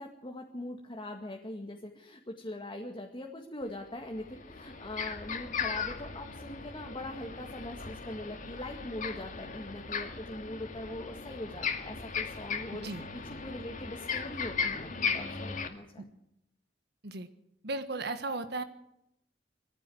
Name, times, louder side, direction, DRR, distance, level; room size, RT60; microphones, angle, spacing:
voice 1, 0.0-16.1, left 1 dB, 25° left, 1 dB, 2.0 m, -42 dB
sound 1, 3.6-3.7 4.1-15.7, left 5 dB, 45° left, 2.3 m, -37 dB
voice 2, 12.7-13.0 16.0-16.1 17.0-17.3 17.6-18.6, right 2 dB, 65° right, 9 dB, 1.6 m, -36 dB
21.5 x 15.0 x 7.9 m, 0.81 s
head